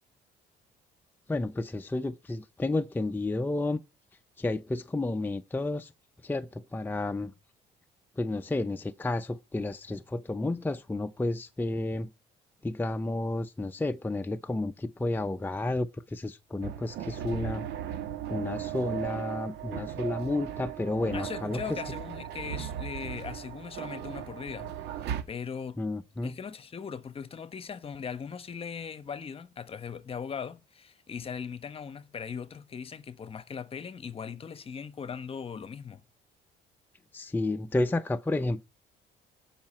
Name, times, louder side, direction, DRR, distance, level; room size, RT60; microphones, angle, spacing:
voice 1, 1.3-3.8 4.4-5.9 6.2-7.3 8.2-12.1 12.6-17.7 18.3-21.6 25.8-26.4 37.1-38.6, left 2 dB, 10° left, 0.7 m, -31 dB
sound 1, 16.6-25.2, right 10 dB, 80° right, 1.9 m, -37 dB
voice 2, 21.1-25.8 26.2-36.0, left 6 dB, 35° left, 1.1 m, -39 dB
17.0 x 5.9 x 4.3 m
cardioid pair, 110°, 17 cm